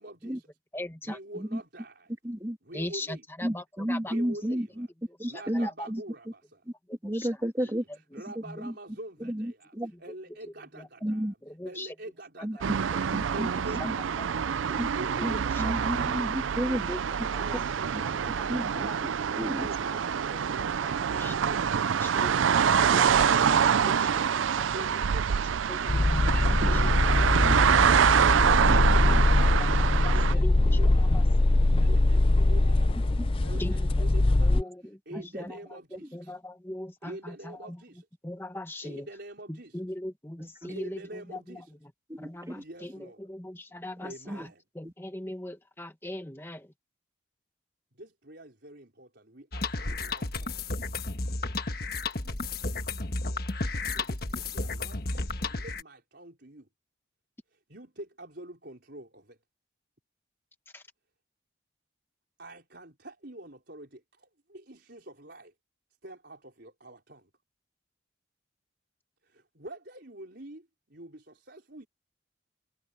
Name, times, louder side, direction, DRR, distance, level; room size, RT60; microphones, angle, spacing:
voice 1, 0.0-0.5 1.1-2.1 2.6-3.5 4.0-4.9 5.3-6.6 7.6-7.8 8.1-9.7 10.0-11.2 11.6-13.0 13.3-14.7 15.0-16.1 16.5-22.6 22.9-24.4 24.7-26.2 26.5-27.8 28.3-29.7 30.0-31.4 31.8-33.2 33.4-34.6 35.0-36.3 37.0-38.1 38.8-39.9 40.7-41.7 42.5-43.3 44.0-44.6 48.0-50.6 52.1-52.4 53.0-53.5 53.9-56.7 57.5-59.4 62.4-65.5 66.0-67.3 69.2-71.9, right 1 dB, 60° right, 5.0 m, -46 dB
voice 2, 0.7-1.2 2.7-4.1 5.2-5.9 6.9-7.3 8.5-8.6 10.8-10.9 11.5-11.9 14.7-14.8 15.2-15.3 15.5-15.9 16.9-17.0 17.3-17.6 18.0-18.1 18.4-18.5 18.7-19.0 19.6-19.7 20.8-20.9 21.2-21.3 22.0-22.3 22.7-23.2 23.5-23.9 24.6-24.7 25.7-26.9 28.5-28.6 30.0-30.5 31.0-31.2 33.6-33.9 34.3-37.8 38.2-39.1 39.5-41.6 42.2-44.5 44.7-46.7 60.7-60.8, left 1 dB, 10° left, 1.5 m, -40 dB
voice 3, 2.2-2.6 3.4-4.9 5.2-6.0 7.0-7.8 8.6-8.7 9.2-9.9 11.0-11.3 12.4-12.8 13.1-13.5 13.8-13.9 14.8-14.9 15.2-16.9 17.5-17.6 17.9-18.1 18.5-18.9 19.4-19.7 26.6-26.7 27.4-27.6 28.1-28.3 28.7-28.8 29.1-29.2 30.1-30.3 33.2-33.3 33.6-33.7 35.1-35.4 40.4-40.7 42.1-42.6 44.3-44.5 44.8-44.9, equal, 15° right, 2.5 m, -32 dB
sound 1, 12.6-30.3, right 7 dB, 90° right, 0.4 m, -26 dB
sound 2, 25.9-34.6, left 2 dB, 30° left, 0.5 m, -23 dB
sound 3, 49.5-55.8, left 3 dB, 50° left, 1.4 m, -32 dB
head